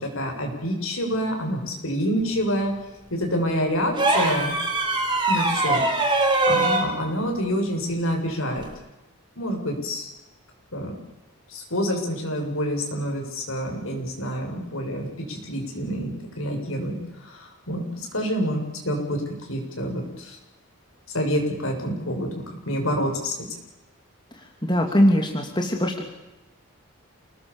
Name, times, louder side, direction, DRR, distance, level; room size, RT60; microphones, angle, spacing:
voice 1, 0.0-2.7 3.1-4.5 5.3-5.8 6.1-8.7 9.4-10.1 10.7-10.9 11.5-17.0 17.2-17.8 18.1-19.2 19.5-20.4 21.1-22.3 22.7-23.3, equal, 70° left, 2 dB, 7.5 m, -27 dB
sound 1, 3.9-6.9 8.6-8.7, right 2 dB, 20° right, 5.4 m, -22 dB
voice 2, 24.6-26.1, equal, 20° left, 2 dB, 2.9 m, -21 dB
29.5 x 20.0 x 7.3 m, 1.0 s
head